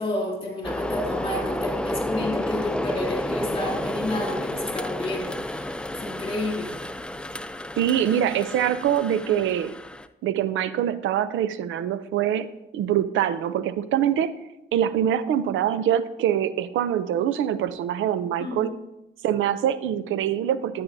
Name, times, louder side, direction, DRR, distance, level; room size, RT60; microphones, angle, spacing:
voice 1, 0.0-6.8 18.4-18.7, left 1 dB, 25° left, -1 dB, 2.7 m, -30 dB
sound 1, 0.6-10.1, left 1 dB, 5° left, 0.4 m, -31 dB
voice 2, 7.8-9.8 10.2-14.4 14.7-18.8 19.2-20.8, right 10 dB, 75° right, 14 dB, 0.5 m, -24 dB
12.5 x 8.6 x 2.7 m, 0.92 s
cardioid pair, 90°, 20 cm